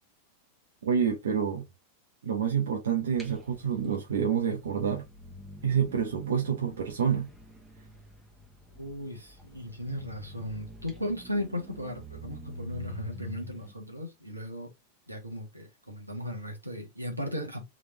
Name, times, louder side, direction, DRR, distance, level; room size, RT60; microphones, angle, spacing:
voice 1, 0.8-1.6 2.2-5.0 5.6-7.3, right 7 dB, 65° right, 0.9 m, -28 dB
sound 1, 3.1-13.7, left 1 dB, 5° right, 1.2 m, -47 dB
voice 2, 8.7-14.7 15.1-17.6, equal, 85° right, 1.4 m, -36 dB
3.8 x 3.3 x 3.1 m
figure-of-eight pair, 90°, 0 cm